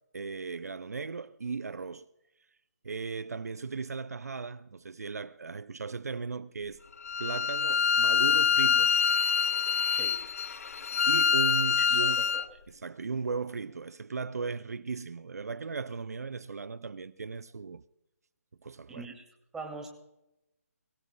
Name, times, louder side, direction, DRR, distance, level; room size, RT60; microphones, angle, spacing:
voice 1, 0.1-2.1 2.8-6.8 7.2-9.0 11.1-12.3 12.7-17.8 18.6-19.1, right 4 dB, 70° right, 0.6 m, -36 dB
Bowed string instrument, 7.0-12.4, left 6 dB, 60° left, 0.7 m, -25 dB
voice 2, 11.8-12.4 18.9-19.2 19.5-19.9, right 4 dB, 5° right, 2.4 m, -42 dB
23.0 x 16.5 x 2.2 m
figure-of-eight pair, 150°, 9 cm